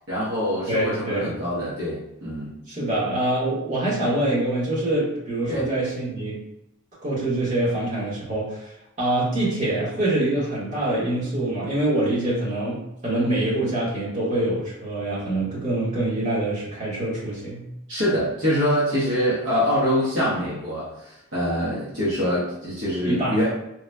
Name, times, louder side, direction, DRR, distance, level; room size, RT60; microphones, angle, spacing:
voice 1, 0.1-2.5 5.5-5.6 17.9-23.6, equal, 55° right, -8 dB, 1.0 m, -24 dB
voice 2, 0.7-1.3 2.7-6.4 7.0-17.6 23.0-23.4, right 1 dB, 35° right, -7 dB, 1.3 m, -25 dB
3.7 x 2.9 x 2.2 m, 0.85 s
head